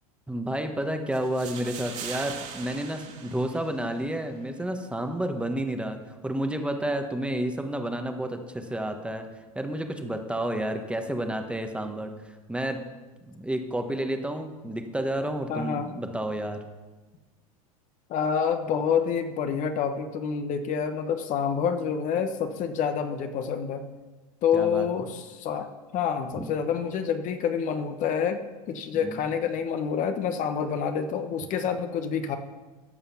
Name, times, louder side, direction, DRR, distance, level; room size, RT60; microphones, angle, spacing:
voice 1, 0.3-6.0 6.2-9.2 9.5-12.8 13.2-16.6 24.5-24.9 26.3-26.5 29.0-29.2, right 1 dB, 5° right, 5 dB, 1.2 m, -30 dB
sound 1, 1.1-4.1, right 7 dB, 40° right, 2.2 m, -40 dB
voice 2, 15.5-15.9 18.1-23.8 24.4-28.4 28.7-32.4, left 7 dB, 45° left, 7 dB, 1.1 m, -27 dB
14.5 x 5.6 x 5.7 m, 1.2 s
hypercardioid pair, 100°, 18 cm